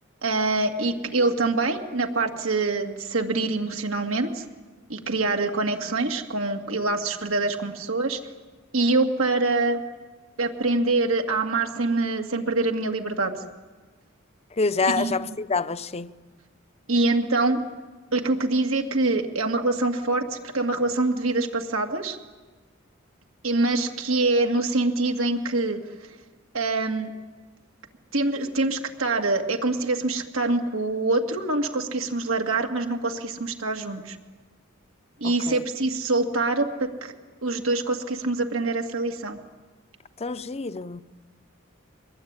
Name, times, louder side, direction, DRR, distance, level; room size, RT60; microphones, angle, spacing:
voice 1, 0.2-4.5 4.9-8.2 8.7-9.8 10.4-13.4 15.0-15.1 16.9-17.6 18.1-22.2 23.4-25.8 26.5-27.1 28.1-34.2 35.2-37.1 37.4-39.4, right 2 dB, 85° right, 2.3 m, -25 dB
voice 2, 14.6-16.1 35.2-35.6 40.2-41.0, left 4 dB, 30° left, 0.7 m, -27 dB
23.5 x 21.0 x 9.7 m
head